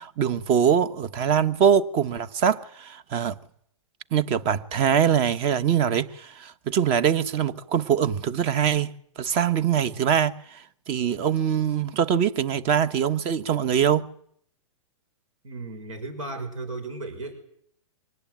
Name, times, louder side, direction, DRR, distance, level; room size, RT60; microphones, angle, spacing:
voice 1, 0.0-3.3 4.1-8.9 9.2-14.1, right 8 dB, 35° right, 1.3 m, -23 dB
voice 2, 15.4-17.5, right 2 dB, 80° right, 6.1 m, -35 dB
25.0 x 19.5 x 9.4 m
hypercardioid pair, 135°, 17 cm